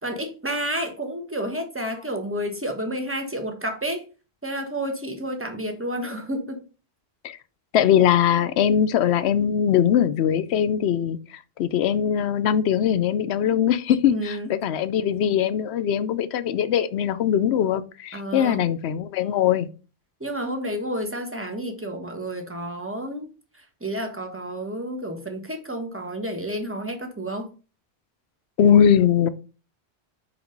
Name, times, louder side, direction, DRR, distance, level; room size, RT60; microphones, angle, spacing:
voice 1, 0.0-4.0 4.4-6.6 14.1-14.5 18.1-18.6 20.2-23.3 23.6-27.5, equal, 15° right, 1.2 m, -30 dB
voice 2, 7.7-11.2 11.6-19.7 28.6-29.3, left 9 dB, 80° left, 0.9 m, -21 dB
5.2 x 4.9 x 5.1 m
omnidirectional pair, 1.1 m